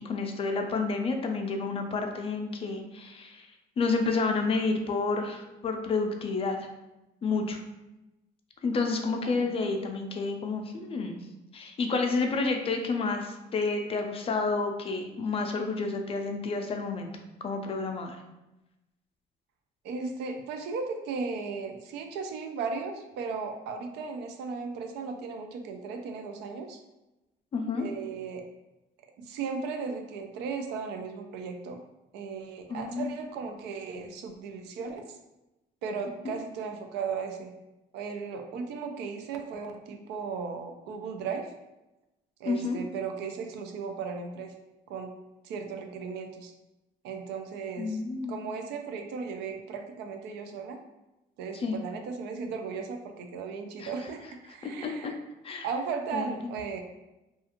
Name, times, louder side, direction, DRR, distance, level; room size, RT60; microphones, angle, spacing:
voice 1, 0.0-3.5 3.8-6.6 7.2-7.6 8.6-11.2 11.5-17.1 17.4-18.2 27.5-27.8 32.7-33.1 42.5-42.8 47.8-48.4 51.6-51.8 53.8-53.9 54.6-55.1 55.4-55.7 56.1-56.5, left 4 dB, 35° left, 4 dB, 0.4 m, -30 dB
voice 2, 19.8-26.8 27.7-28.4 29.2-31.8 32.1-35.2 35.8-37.5 37.9-41.5 42.4-44.5 44.9-45.1 45.4-46.5 47.0-48.0 48.3-50.8 51.4-55.2 55.6-56.8, right 5 dB, 85° right, 5 dB, 0.4 m, -36 dB
2.4 x 2.3 x 2.8 m, 0.98 s
cardioid pair, 110°, 17 cm